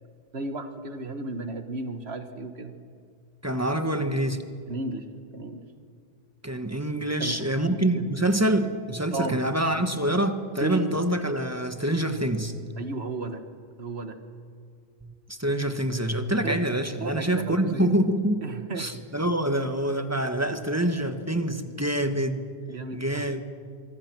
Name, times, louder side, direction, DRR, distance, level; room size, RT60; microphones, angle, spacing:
voice 1, 0.3-2.7 4.7-5.1 5.3-5.6 7.2-7.5 7.9-8.1 9.1-9.4 10.6-11.0 12.8-13.4 13.8-14.2 16.4-16.5 17.0-17.9 18.4-18.9 22.7-23.2, right 3 dB, 70° right, 8 dB, 1.6 m, -34 dB
voice 2, 3.4-4.4 6.4-12.5 15.3-18.4 18.7-22.4 22.9-23.4, right 1 dB, 15° right, 7 dB, 1.3 m, -26 dB
25.5 x 24.0 x 6.2 m, 2.2 s
omnidirectional pair, 1.2 m